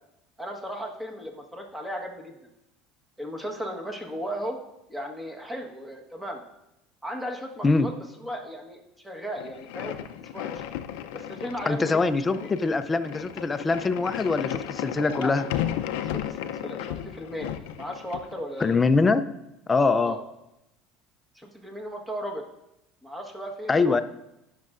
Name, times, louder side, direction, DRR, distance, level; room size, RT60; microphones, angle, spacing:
voice 1, 0.4-2.4 3.2-4.6 4.9-6.4 7.0-7.9 8.2-10.6 11.1-12.5 15.1-15.3 16.0-17.5 17.8-18.8 20.0-20.2 21.3-22.5 23.0-24.0, equal, 5° right, 2 dB, 1.3 m, -36 dB
sound 1, 9.4-18.8, left 11 dB, 85° left, 0.5 m, -34 dB
voice 2, 11.7-15.4 18.6-19.2 19.7-20.2 23.7-24.0, left 3 dB, 20° left, 11 dB, 0.5 m, -23 dB
18.5 x 6.5 x 2.5 m, 0.89 s
cardioid pair, 130°, 0 cm